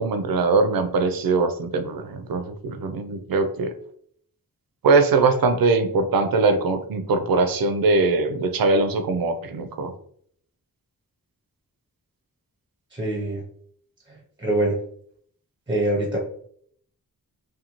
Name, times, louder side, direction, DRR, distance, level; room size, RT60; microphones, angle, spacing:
voice 1, 0.0-3.7 4.8-9.9, right 3 dB, 70° right, 8 dB, 0.5 m, -21 dB
voice 2, 12.9-13.4 14.1-14.7 15.7-16.2, right 1 dB, 15° right, -2 dB, 0.6 m, -24 dB
2.5 x 2.3 x 2.9 m, 0.62 s
wide cardioid pair, 100°, 36 cm